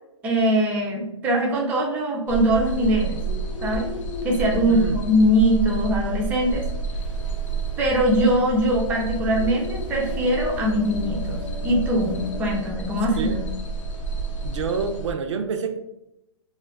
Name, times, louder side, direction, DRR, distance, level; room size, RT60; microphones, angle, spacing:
voice 1, 0.2-3.2 3.6-3.9 4.2-6.6 7.8-13.4, equal, 10° right, -2 dB, 0.3 m, -22 dB
sound 1, 2.3-15.1, right 2 dB, 85° left, 0.6 m, -30 dB
voice 2, 4.7-5.1 13.2-13.4 14.4-15.8, right 6 dB, 70° right, 5 dB, 0.5 m, -28 dB
sound 2, 7.0-12.3, left 1 dB, 45° left, 0.6 m, -39 dB
2.3 x 2.2 x 3.3 m, 0.85 s
hypercardioid pair, 145°, 16 cm